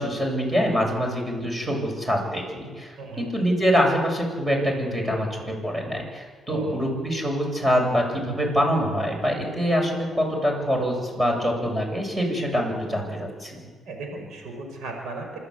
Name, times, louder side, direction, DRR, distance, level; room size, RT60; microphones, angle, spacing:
voice 1, 0.0-13.7, equal, 15° right, 1 dB, 8.0 m, -25 dB
voice 2, 6.5-6.9 13.9-15.4, right 3 dB, 80° right, 3 dB, 5.4 m, -36 dB
26.5 x 13.5 x 8.2 m, 1.5 s
cardioid pair, 85°, 0 cm